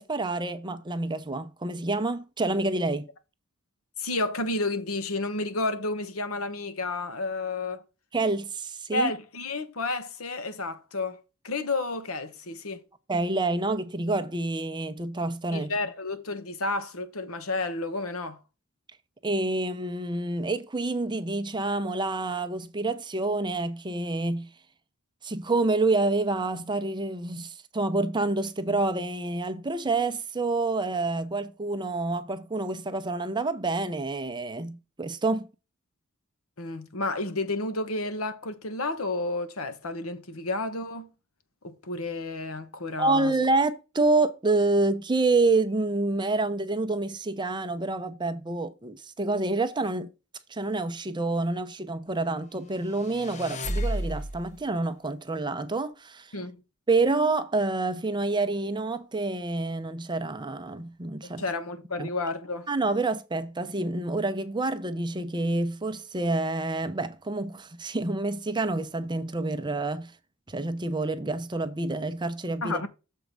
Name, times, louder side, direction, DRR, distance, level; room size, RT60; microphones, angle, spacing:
voice 1, 0.0-3.1 8.1-9.1 13.1-15.7 19.2-24.5 25.2-35.5 43.0-50.1 50.5-56.3 56.9-61.4 62.0-62.1 62.7-70.1 70.5-72.8, right 2 dB, 20° right, 0.6 m, -28 dB
voice 2, 4.0-7.8 8.9-12.8 15.5-18.4 36.6-41.1 41.6-43.3 56.3-56.6 61.2-62.7 72.6-72.9, left 2 dB, 80° left, 1.1 m, -31 dB
sound 1, 52.8-54.6, equal, 35° left, 0.7 m, -32 dB
7.2 x 4.5 x 5.2 m
head